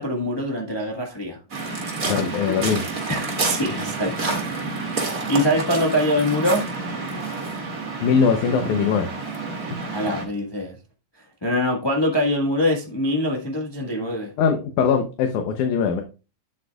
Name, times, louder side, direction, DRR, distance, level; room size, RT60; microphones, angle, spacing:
voice 1, 0.0-1.4 3.1-4.4 4.8-6.7 9.8-10.8 11.4-14.3, left 1 dB, 20° left, -1 dB, 0.6 m, -24 dB
Waves surf, 1.5-10.3, right 3 dB, 30° right, 2.1 m, -29 dB
voice 2, 2.1-2.8 8.0-9.1 14.4-16.0, left 6 dB, 90° left, 5 dB, 2.4 m, -21 dB
10.0 x 7.9 x 2.4 m, 0.31 s
omnidirectional pair, 3.3 m